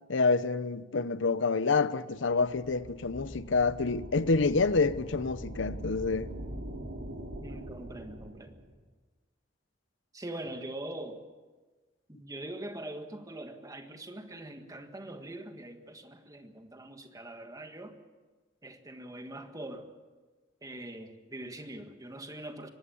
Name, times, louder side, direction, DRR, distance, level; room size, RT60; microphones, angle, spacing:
voice 1, 0.1-6.3, left 4 dB, 70° left, 0.8 m, -27 dB
sound 1, 2.4-8.7, right 1 dB, 90° right, 4.2 m, -42 dB
voice 2, 7.4-8.5 10.1-11.2 12.1-17.9 18.6-19.9 20.6-22.7, right 1 dB, 20° right, 1.7 m, -43 dB
23.5 x 18.5 x 7.2 m
head